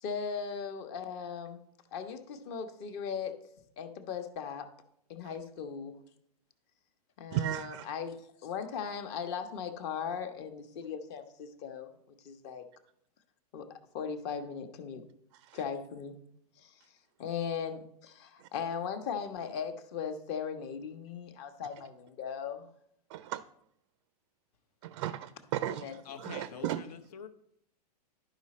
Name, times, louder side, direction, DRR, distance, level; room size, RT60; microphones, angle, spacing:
voice 1, 0.0-1.6 1.9-3.4 3.8-4.7 5.1-6.0 7.2-11.9 12.2-12.6 13.5-15.0 15.5-16.2 16.6-16.8 17.2-22.7 25.7-26.0 26.3-26.4, left 6 dB, 40° left, 8 dB, 0.9 m, -38 dB
voice 2, 7.3-7.9 15.5-15.6 18.4-18.5 23.1-23.4 24.8-26.8, right 13 dB, 45° right, 14 dB, 0.4 m, -35 dB
voice 3, 26.0-27.3, left 7 dB, 70° left, 9 dB, 0.9 m, -45 dB
11.0 x 5.0 x 4.2 m, 0.72 s
hypercardioid pair, 145°, 20 cm